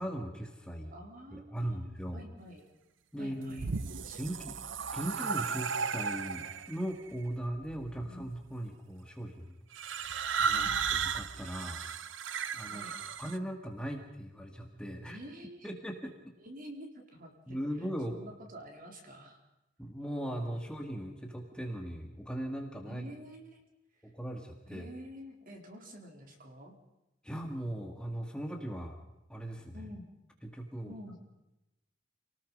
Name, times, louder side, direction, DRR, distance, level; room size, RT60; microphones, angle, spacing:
voice 1, 0.0-0.9 1.5-2.2 3.1-3.7 4.2-4.6 4.9-9.5 10.4-11.9 12.5-12.9 13.2-15.2 15.6-16.1 17.5-18.2 19.8-23.1 24.0-24.9 27.2-29.0 29.3-29.9 30.4-30.9, right 1 dB, 5° left, 3 dB, 2.0 m, -39 dB
voice 2, 0.9-2.7 3.2-3.7 4.0-4.5 8.0-8.2 10.5-11.0 12.7-13.0 15.0-15.7 16.4-19.4 22.8-23.6 24.7-26.7 29.7-30.1 30.9-31.2, equal, 45° right, 2 dB, 4.0 m, -49 dB
sound 1, 3.4-6.8 7.7-8.2 9.7-13.4, right 6 dB, 75° right, 0.8 m, -34 dB
27.5 x 19.0 x 5.4 m, 0.94 s
head